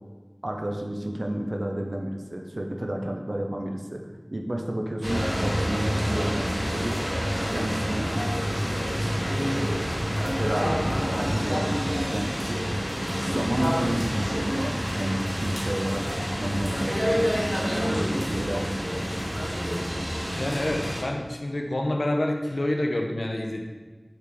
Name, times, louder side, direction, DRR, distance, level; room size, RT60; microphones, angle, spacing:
voice 1, 0.4-4.0 4.3-7.0 7.5-8.1 9.5-9.9 10.4-12.7 13.2-16.0 16.4-19.2, right 1 dB, 60° right, 2 dB, 0.4 m, -31 dB
sound 1, 5.0-21.0, equal, 5° left, 1.4 m, -28 dB
voice 2, 20.4-23.6, left 1 dB, 85° left, 1 dB, 0.4 m, -27 dB
4.6 x 2.5 x 3.4 m, 1.4 s
wide cardioid pair, 45°, 0 cm